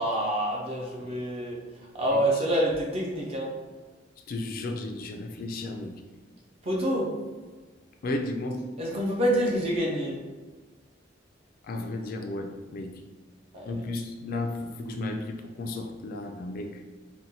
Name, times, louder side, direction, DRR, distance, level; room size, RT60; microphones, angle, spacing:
voice 1, 0.0-1.6 1.9-3.5 6.6-7.1 8.8-10.2 13.5-13.7, right 1 dB, 35° right, -3 dB, 0.5 m, -27 dB
voice 2, 4.3-6.0 8.0-8.7 11.6-13.0 13.7-16.8, left 2 dB, 50° left, 4 dB, 0.3 m, -34 dB
4.0 x 2.1 x 2.7 m, 1.3 s
head